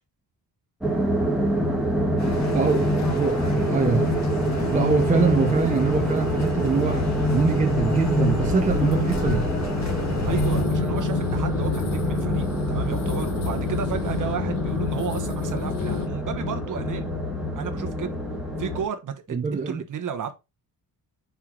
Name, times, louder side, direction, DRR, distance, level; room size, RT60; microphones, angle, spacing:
sound 1, 0.8-18.8, equal, ahead, 1.2 m, -25 dB
sound 2, 2.2-10.6, left 3 dB, 45° left, 2.0 m, -32 dB
voice 1, 2.5-4.2 4.7-9.5 19.3-19.8, right 5 dB, 20° right, 0.6 m, -24 dB
sound 3, 9.7-16.1, left 10 dB, 65° left, 0.9 m, -32 dB
voice 2, 10.2-17.1 17.5-18.2 18.6-20.3, right 7 dB, 55° right, 1.0 m, -33 dB
5.6 x 4.6 x 3.8 m
wide cardioid pair, 175°, 38 cm